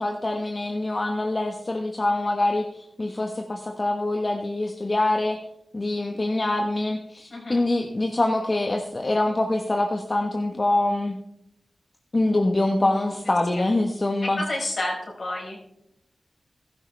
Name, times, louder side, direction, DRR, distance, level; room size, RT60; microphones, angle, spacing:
voice 1, 0.0-2.7 3.0-5.4 5.7-11.2 12.1-14.4, left 2 dB, 40° left, 3 dB, 1.2 m, -24 dB
voice 2, 7.3-7.6 12.8-13.1 13.5-13.6 14.2-15.6, left 1 dB, 60° left, -2 dB, 4.7 m, -31 dB
15.5 x 12.5 x 3.4 m, 0.80 s
cardioid pair, 40°, 0 cm